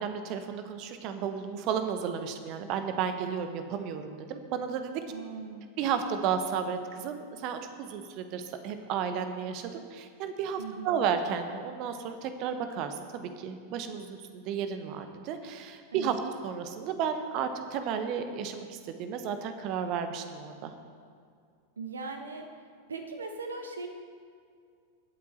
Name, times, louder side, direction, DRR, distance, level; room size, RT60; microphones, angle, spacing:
voice 1, 0.0-5.0 5.8-16.2 16.4-20.7, right 7 dB, 40° right, 8 dB, 1.1 m, -33 dB
voice 2, 5.1-5.7 10.6-11.0 15.9-16.2 21.8-22.5 22.9-23.9, right 4 dB, 70° right, 5 dB, 1.1 m, -39 dB
21.5 x 8.5 x 4.3 m, 2.2 s
figure-of-eight pair, 90°, 0 cm